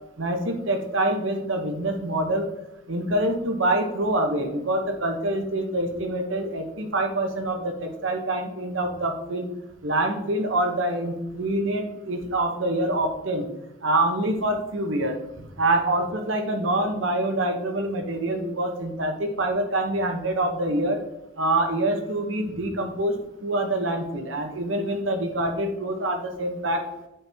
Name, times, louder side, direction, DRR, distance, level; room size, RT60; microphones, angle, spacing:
voice 1, 0.2-2.5 2.9-9.5 9.8-13.5 13.8-15.2 15.6-21.0 21.4-23.2 23.4-26.8, right 1 dB, 75° right, 5 dB, 1.0 m, -25 dB
8.7 x 4.4 x 3.5 m, 0.93 s
head